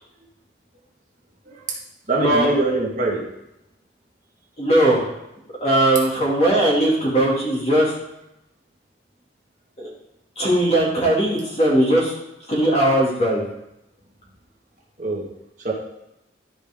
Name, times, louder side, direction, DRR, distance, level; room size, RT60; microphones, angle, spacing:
voice 1, 2.1-3.2 15.0-15.2 15.6-15.7, right 2 dB, 40° right, -3 dB, 1.7 m, -23 dB
voice 2, 4.6-5.1 5.6-7.9 9.8-9.9 10.4-12.1 12.5-13.4, right 1 dB, 35° left, -4 dB, 2.4 m, -19 dB
12.5 x 5.1 x 3.6 m, 0.87 s
head